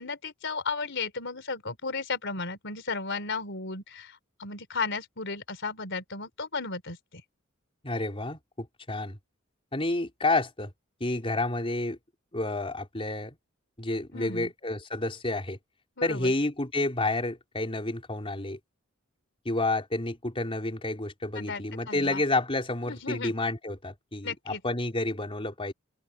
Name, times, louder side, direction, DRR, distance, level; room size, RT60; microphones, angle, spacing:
voice 1, 0.0-7.2 14.1-14.5 16.0-16.3 21.3-22.2 22.8-23.3 24.2-24.6, left 4 dB, 60° left, 4.1 m, -34 dB
voice 2, 7.8-9.2 9.7-10.7 11.0-12.0 12.3-13.4 13.8-15.6 16.0-18.6 19.4-25.7, left 2 dB, 25° left, 4.6 m, -30 dB
open air
head